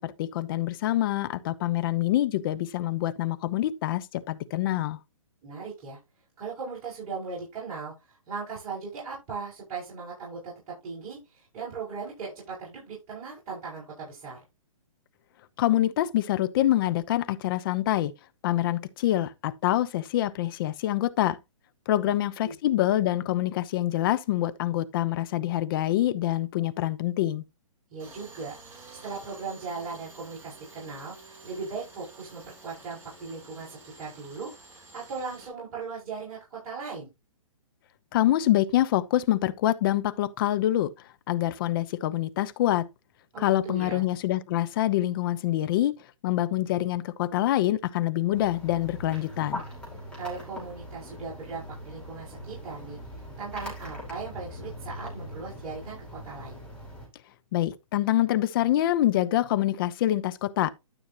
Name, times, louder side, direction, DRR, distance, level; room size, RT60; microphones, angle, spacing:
voice 1, 0.0-5.0 15.6-18.1 18.4-21.4 21.9-27.4 38.1-40.9 41.3-42.9 43.4-45.9 46.2-49.6 57.5-60.7, left 14 dB, 40° left, 0.8 m, -26 dB
voice 2, 5.4-6.0 6.4-14.4 21.9-22.1 22.4-22.5 27.9-28.6 29.0-37.1 43.3-44.0 50.1-56.6, right 4 dB, 35° right, 7.1 m, -38 dB
Tools, 28.0-35.5, right 3 dB, 15° right, 4.1 m, -50 dB
sound 1, 48.3-57.1, left 1 dB, 5° left, 5.6 m, -41 dB
12.5 x 6.3 x 3.0 m
hypercardioid pair, 140°, 18 cm